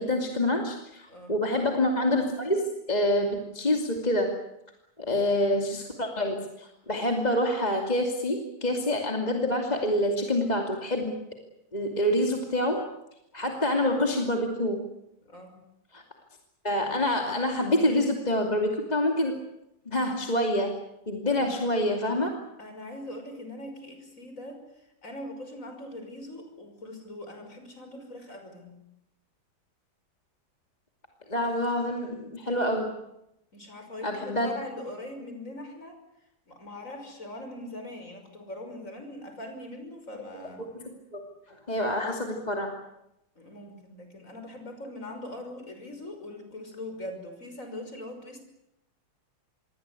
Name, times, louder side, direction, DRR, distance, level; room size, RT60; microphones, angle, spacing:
voice 1, 0.0-4.4 5.0-11.2 11.7-12.8 13.3-14.8 15.9-16.0 16.6-19.3 19.9-20.8 21.1-22.3 31.3-32.9 34.0-34.5 40.6-41.2 41.5-42.7, left 1 dB, 20° left, 2 dB, 2.7 m, -27 dB
voice 2, 15.2-15.6 21.3-21.5 22.6-24.6 25.0-28.8 33.5-36.0 36.5-40.7 43.4-48.4, left 1 dB, 40° left, 5 dB, 6.3 m, -41 dB
26.5 x 22.5 x 8.4 m, 0.84 s
omnidirectional pair, 2.2 m